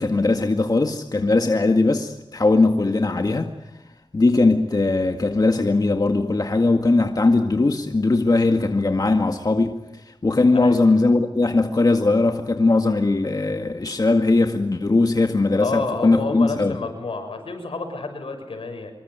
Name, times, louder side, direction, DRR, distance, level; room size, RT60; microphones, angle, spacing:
voice 1, 0.0-3.5 4.1-16.8, left 3 dB, 45° left, 5 dB, 2.0 m, -19 dB
voice 2, 15.6-18.9, left 3 dB, 80° left, 7 dB, 6.7 m, -29 dB
26.0 x 23.5 x 9.5 m, 0.95 s
wide cardioid pair, 60°, 9 cm